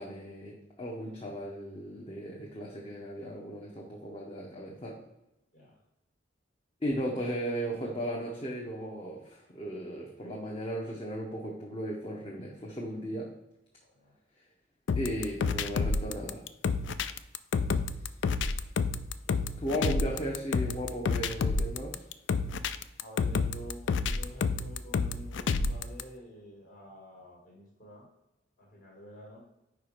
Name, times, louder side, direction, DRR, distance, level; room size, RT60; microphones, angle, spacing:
voice 1, 0.0-4.9 6.8-13.3 15.0-16.4 18.5-18.6 19.6-22.0, equal, 30° left, -2 dB, 0.8 m, -36 dB
voice 2, 13.8-14.1 17.5-17.9 19.2-19.7 23.0-28.1 28.6-29.4, equal, 50° left, -2 dB, 1.7 m, -49 dB
sound 1, 14.9-26.0, left 4 dB, 75° left, 0.4 m, -29 dB
5.1 x 4.6 x 4.9 m, 0.91 s
head